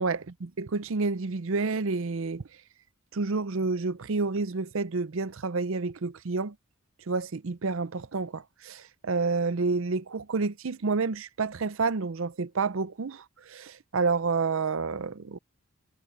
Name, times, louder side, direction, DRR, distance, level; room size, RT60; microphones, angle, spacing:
voice 1, 0.0-2.4 3.1-6.5 7.1-15.4, right 4 dB, 60° right, 0.6 m, -29 dB
head